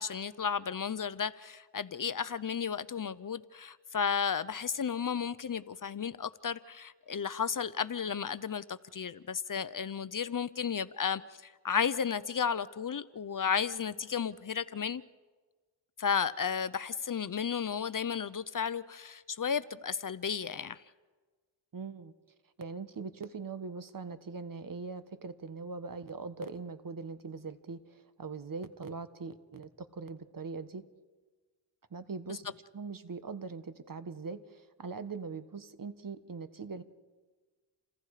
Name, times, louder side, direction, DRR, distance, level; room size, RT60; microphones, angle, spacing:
voice 1, 0.0-15.0 16.0-20.8 32.3-32.4, left 7 dB, 40° left, 0.8 m, -33 dB
voice 2, 21.7-22.1 22.6-30.8 31.9-36.8, right 4 dB, 45° right, 1.6 m, -41 dB
29.0 x 26.5 x 5.0 m
cardioid pair, 70°, 48 cm